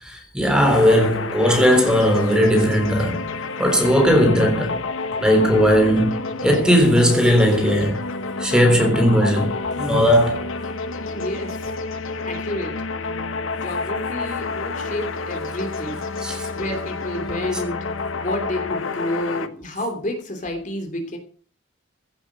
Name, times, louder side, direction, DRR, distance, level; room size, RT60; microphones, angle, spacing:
voice 1, 0.0-4.8 5.2-8.0 8.4-10.4 16.2-16.5, equal, 5° right, 3.6 m, -18 dB
sound 1, 0.7-19.5, left 3 dB, 85° left, 1.3 m, -29 dB
voice 2, 11.1-11.8 12.2-12.8 13.5-16.1 16.5-17.9 18.2-21.2, left 1 dB, 40° left, 3.0 m, -30 dB
16.0 x 8.9 x 6.2 m
head